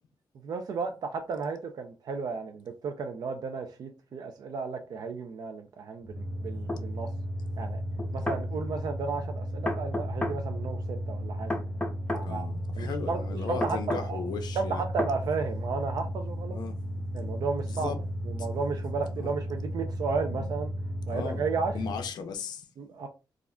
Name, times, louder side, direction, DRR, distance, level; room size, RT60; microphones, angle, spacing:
voice 1, 0.4-7.1 7.6-7.8 8.1-11.5 12.1-12.5 12.8-14.2 14.5-16.6 17.1-17.9 18.2-20.7 21.1-21.7 22.8-23.1, right 4 dB, 60° right, 0.4 m, -33 dB
sound 1, 6.0-22.1, equal, 15° right, 0.9 m, -34 dB
sound 2, 6.7-6.8 8.0-8.4 9.6-10.4 11.5-12.3 13.6-14.1 15.0-15.2, left 1 dB, 15° left, 0.6 m, -31 dB
voice 2, 12.2-14.8 16.5-16.8 17.1-17.3 17.7-18.0 19.2-19.3 20.3-20.5 21.1-21.4 21.7-22.7, left 6 dB, 65° left, 0.4 m, -37 dB
2.4 x 2.1 x 3.5 m
cardioid pair, 125°, 8 cm